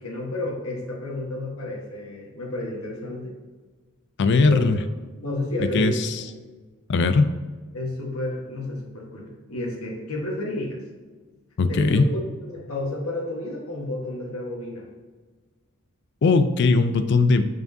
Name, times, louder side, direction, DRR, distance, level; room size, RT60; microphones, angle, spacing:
voice 1, 0.0-3.3 4.4-4.7 5.2-6.1 7.7-10.8 11.7-12.0 12.4-14.9, left 1 dB, 75° left, -1 dB, 1.4 m, -31 dB
voice 2, 4.2-4.8 5.7-6.2 6.9-7.3 11.6-12.1 16.2-17.5, left 3 dB, 55° left, 11 dB, 0.4 m, -19 dB
7.8 x 4.8 x 2.7 m, 1.3 s
head